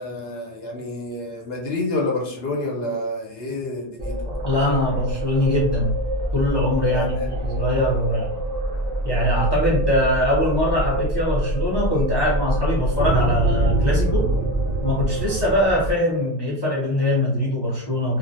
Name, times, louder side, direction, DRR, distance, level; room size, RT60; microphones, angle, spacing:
voice 1, 0.0-4.2 6.9-7.4, left 2 dB, 60° left, -1 dB, 0.8 m, -28 dB
sound 1, 4.0-15.9, right 1 dB, 75° right, 0.3 m, -25 dB
voice 2, 4.4-5.9 6.3-8.4 9.0-14.3 14.8-18.2, left 1 dB, 35° left, -4 dB, 0.4 m, -22 dB
2.3 x 2.0 x 2.7 m, 0.63 s
omnidirectional pair, 1.2 m